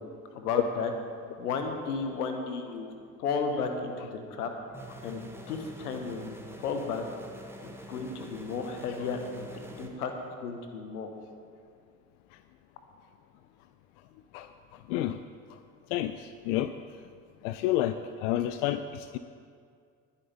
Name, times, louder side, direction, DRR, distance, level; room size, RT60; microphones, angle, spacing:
voice 1, 0.3-0.9 1.4-2.9 3.2-4.5 5.0-7.0 7.9-9.5 9.8-10.1 10.4-11.1, left 5 dB, 70° left, 5 dB, 1.4 m, -33 dB
sound 1, 4.7-9.9, right 1 dB, 5° right, 1.6 m, -46 dB
voice 2, 14.3-15.2 15.5-15.6 15.9-16.7 17.4-19.2, left 13 dB, 50° left, 11 dB, 0.6 m, -30 dB
20.0 x 9.5 x 3.6 m, 2.2 s
figure-of-eight pair, 60°, 47 cm